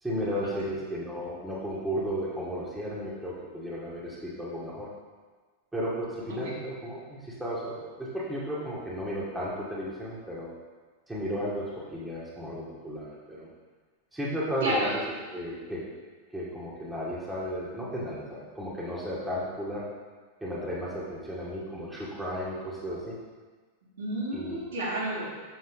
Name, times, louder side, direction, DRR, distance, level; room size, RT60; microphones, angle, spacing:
voice 1, 0.0-4.9 5.7-10.5 11.1-13.5 14.1-14.9 15.3-15.8 16.3-19.8 20.4-23.2 24.3-24.6, equal, 5° right, -6 dB, 2.0 m, -34 dB
voice 2, 14.6-14.9 24.0-25.3, right 1 dB, 65° right, -6 dB, 2.6 m, -31 dB
7.1 x 6.9 x 3.9 m, 1.4 s
figure-of-eight pair, 90°, 0 cm